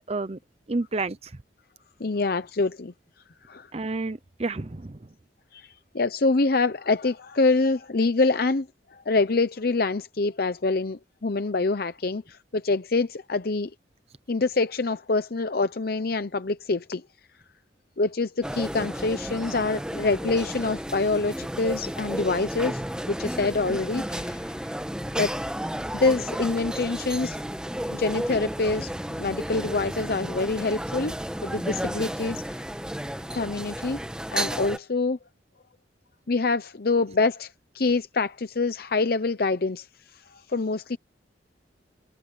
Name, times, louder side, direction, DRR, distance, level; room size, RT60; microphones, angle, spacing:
voice 1, 0.1-0.4 0.7-1.3 3.7-5.0, right 3 dB, 35° right, 0.7 m, -30 dB
voice 2, 2.0-2.9 3.5-3.7 5.5-13.7 14.3-17.0 18.0-22.8 23.1-24.7 25.2-25.4 25.9-27.4 27.9-28.9 29.2-31.1 31.4-32.6 33.3-34.0 34.3-35.2 36.3-39.9 40.5-41.0, left 3 dB, 55° left, 0.7 m, -26 dB
sound 1, 18.4-34.8, equal, 5° right, 1.4 m, -32 dB
head